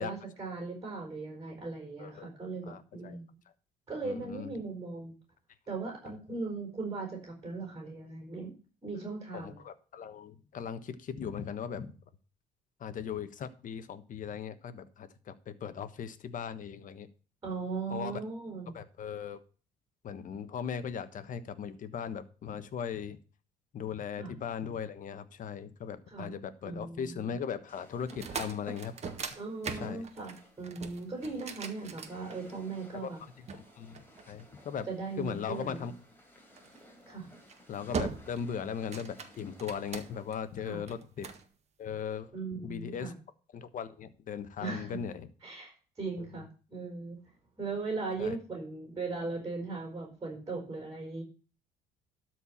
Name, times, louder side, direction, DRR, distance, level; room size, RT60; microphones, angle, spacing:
voice 1, 0.0-3.3 3.9-5.1 5.7-8.5 8.8-9.6 17.4-18.7 24.2-24.3 26.1-26.3 26.6-27.4 29.4-33.2 34.9-35.9 37.1-37.3 40.6-40.8 42.3-43.1 44.6-45.0 45.4-47.2 47.6-51.2, right 4 dB, 20° right, 1 dB, 4.6 m, -38 dB
voice 2, 2.7-3.2 4.0-4.5 6.1-6.2 8.9-9.1 9.3-11.9 12.8-17.1 17.9-18.2 18.7-19.4 20.0-23.2 23.7-28.9 29.7-30.1 32.9-33.1 33.5-34.9 35.2-35.9 37.7-41.3 41.8-42.3 42.6-43.1 43.5-45.3 46.2-46.4 48.2-48.4, left 7 dB, 50° left, 12 dB, 1.3 m, -38 dB
sound 1, 27.7-40.5, equal, 10° left, 3.7 m, -55 dB
sound 2, 28.0-32.7 33.5-34.8 36.5-36.8 37.3-37.6 37.9-38.5 38.8-40.4 40.9-41.4, right 5 dB, 40° right, 1.7 m, -40 dB
12.5 x 4.7 x 7.3 m, 0.37 s
cardioid pair, 110°, 17 cm